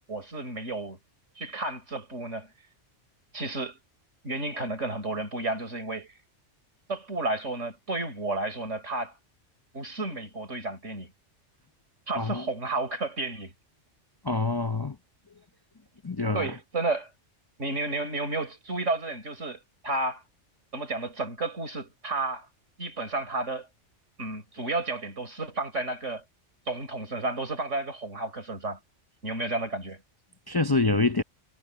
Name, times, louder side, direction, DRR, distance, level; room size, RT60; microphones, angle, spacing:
voice 1, 0.1-1.0 1.4-2.5 3.3-3.8 4.2-6.1 6.9-9.1 9.7-11.1 12.1-13.5 16.3-17.1 17.6-20.2 20.7-22.5 22.8-23.7 24.2-26.2 26.7-28.8 29.2-30.0, right 2 dB, 80° right, 5.1 m, -32 dB
voice 2, 14.2-15.0 16.0-16.6 30.5-31.2, left 3 dB, 25° left, 0.6 m, -26 dB
omnidirectional pair, 1.2 m